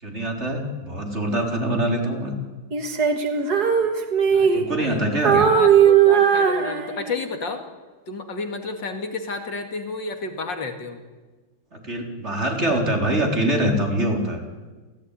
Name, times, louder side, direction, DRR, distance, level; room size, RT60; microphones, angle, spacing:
voice 1, 0.0-2.4 4.5-5.4 11.7-14.4, right 1 dB, 35° right, 2 dB, 4.3 m, -24 dB
Female singing, 2.7-4.9 5.2-7.3, right 7 dB, 55° right, 2.3 m, -18 dB
voice 2, 4.3-5.0 5.3-7.6 8.1-11.0, left 3 dB, 65° left, 6 dB, 2.9 m, -31 dB
29.0 x 16.0 x 10.0 m, 1.3 s
omnidirectional pair, 2.2 m